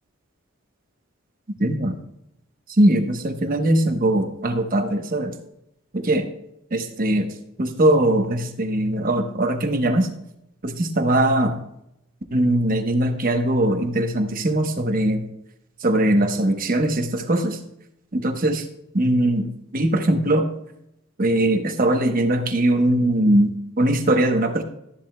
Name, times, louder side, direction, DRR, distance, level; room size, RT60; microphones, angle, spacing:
voice 1, 1.6-1.9 2.8-5.3 5.9-6.3 6.7-7.3 7.6-10.1 10.6-11.6 12.3-15.2 15.8-17.6 18.1-18.6 18.9-20.5 21.2-24.6, right 1 dB, 40° right, 6 dB, 1.0 m, -20 dB
13.0 x 10.5 x 2.2 m, 0.82 s
head